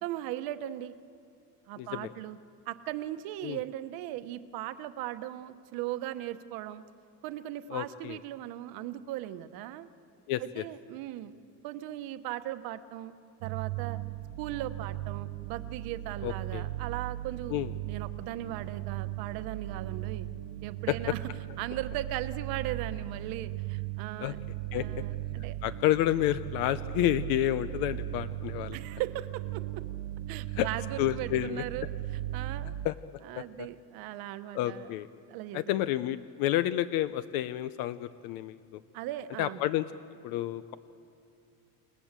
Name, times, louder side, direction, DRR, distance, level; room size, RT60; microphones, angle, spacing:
voice 1, 0.0-0.9 1.7-2.4 2.7-6.8 7.2-9.9 10.4-11.4 11.6-13.1 13.4-14.0 14.4-17.5 17.9-20.3 20.6-21.2 21.6-24.4 24.7-25.6 28.7-29.8 30.3-32.7 33.2-34.9 35.3-35.6 38.9-39.6, right 13 dB, 60° right, 11 dB, 1.1 m, -38 dB
voice 2, 1.8-2.1 3.4-3.6 7.7-8.2 10.3-10.6 16.2-16.7 17.5-17.7 20.9-21.0 24.2-24.3 24.7-25.0 25.6-28.8 30.5-30.7 31.0-31.6 32.8-32.9 33.4-33.7 34.5-35.1 35.5-38.8 39.4-39.8 40.2-40.7, left 13 dB, 60° left, 13 dB, 0.7 m, -30 dB
sound 1, 13.4-32.9, right 15 dB, 85° right, 0.6 m, -37 dB
29.0 x 19.5 x 7.5 m, 2.7 s
cardioid pair, 175°, 40 cm